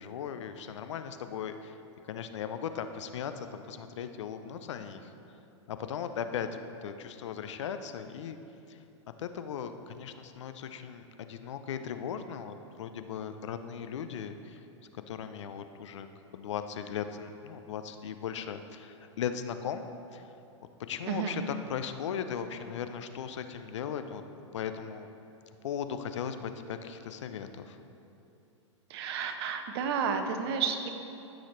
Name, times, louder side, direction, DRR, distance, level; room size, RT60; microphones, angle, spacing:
voice 1, 0.0-1.8 2.1-5.1 5.7-8.4 8.7-8.8 9.2-14.6 14.9-16.1 16.3-19.8 20.1-20.2 20.6-24.2 24.5-25.1 25.6-27.8, left 8 dB, 65° left, 9 dB, 0.6 m, -38 dB
voice 2, 21.1-21.4 28.9-30.9, right 6 dB, 55° right, 6 dB, 0.9 m, -31 dB
15.0 x 6.3 x 3.2 m, 2.8 s
hypercardioid pair, 105°, 16 cm